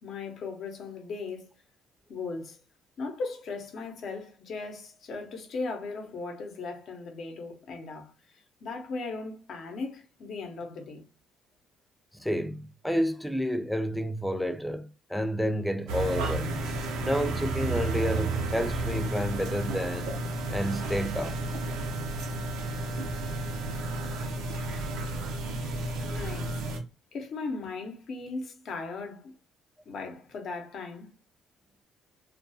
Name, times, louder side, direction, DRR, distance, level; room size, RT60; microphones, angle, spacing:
voice 1, 0.0-1.5 2.1-2.6 3.0-11.0 26.0-26.6 27.1-29.3 29.9-31.2, left 3 dB, 60° left, 0.7 m, -37 dB
voice 2, 12.1-16.6 17.0-20.1 20.5-21.4, equal, 5° left, 0.4 m, -30 dB
sound 1, 15.9-26.8, right 2 dB, 90° right, 0.6 m, -32 dB
2.3 x 2.3 x 2.7 m
supercardioid pair, 80°, 0 cm